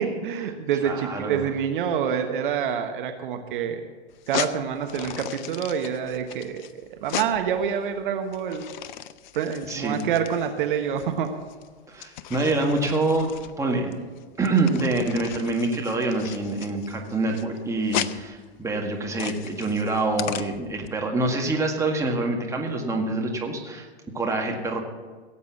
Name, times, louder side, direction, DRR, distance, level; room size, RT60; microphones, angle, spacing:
voice 1, 0.0-3.8 4.3-8.6 9.3-11.3, right 8 dB, 50° right, 6 dB, 1.2 m, -27 dB
voice 2, 0.8-1.5 9.7-10.0 11.9-13.3 13.6-13.9 14.4-23.9 24.1-24.9, right 2 dB, 10° right, 1 dB, 1.8 m, -26 dB
Paper Fan Open-Close, 4.1-20.9, left 11 dB, 45° left, 0.7 m, -37 dB
17.0 x 8.4 x 6.0 m, 1.5 s
figure-of-eight pair, 110°, 32 cm